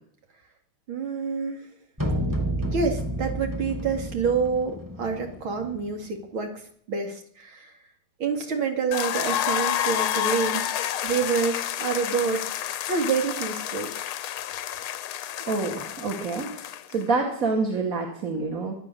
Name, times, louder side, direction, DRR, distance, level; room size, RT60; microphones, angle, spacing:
voice 1, 0.9-1.6 2.6-6.5 6.9-7.6 8.2-13.9, right 5 dB, 75° right, 4 dB, 3.2 m, -27 dB
sound 1, 2.0-6.0, right 1 dB, 10° right, 1.9 m, -30 dB
sound 2, 8.9-17.0, left 11 dB, 90° left, 1.7 m, -29 dB
voice 2, 15.5-18.8, right 3 dB, 40° right, 0 dB, 2.6 m, -27 dB
24.0 x 8.8 x 6.8 m, 0.63 s
omnidirectional pair, 2.3 m